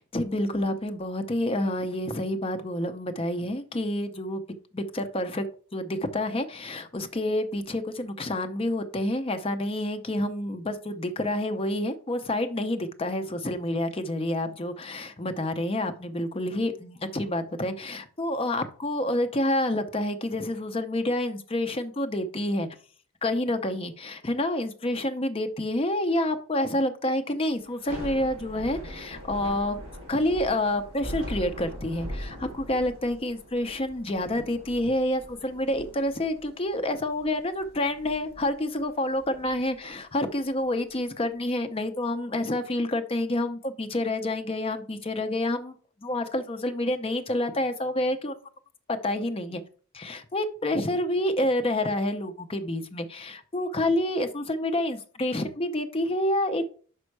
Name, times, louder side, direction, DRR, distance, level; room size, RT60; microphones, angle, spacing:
voice 1, 0.0-4.4 4.7-5.4 5.7-22.7 23.2-29.8 30.1-45.7 46.0-48.4 48.9-49.6 49.9-56.7, left 1 dB, 25° left, 0.6 m, -28 dB
Thunder / Rain, 27.7-40.9, equal, 25° right, 2.9 m, -42 dB
5.6 x 5.3 x 4.6 m
head